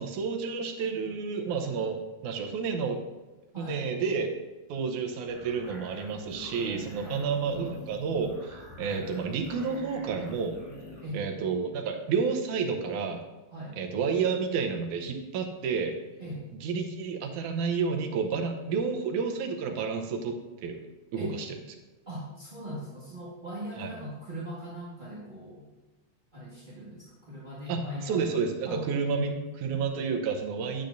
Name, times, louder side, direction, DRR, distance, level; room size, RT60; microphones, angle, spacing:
voice 1, 0.0-3.0 3.6-4.3 4.7-10.6 11.1-13.2 13.8-16.0 16.6-20.8 21.1-21.6 23.8-23.9 27.7-29.3 29.6-30.8, right 5 dB, 80° right, 4 dB, 2.3 m, -30 dB
sound 1, 5.3-11.1, left 1 dB, 30° left, 2.8 m, -46 dB
voice 2, 22.1-25.6 26.3-28.2 28.6-29.4, right 1 dB, 30° right, -8 dB, 0.9 m, -39 dB
10.0 x 8.6 x 2.6 m, 1.2 s
omnidirectional pair, 3.5 m